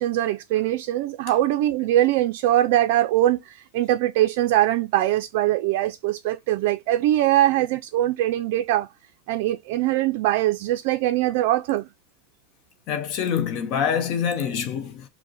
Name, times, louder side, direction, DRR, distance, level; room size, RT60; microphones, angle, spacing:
voice 1, 0.0-8.9 9.3-11.9, right 14 dB, 60° right, 0.3 m, -22 dB
voice 2, 12.9-15.1, left 7 dB, 45° left, 0.7 m, -26 dB
5.1 x 2.1 x 4.0 m
supercardioid pair, 140°, 0 cm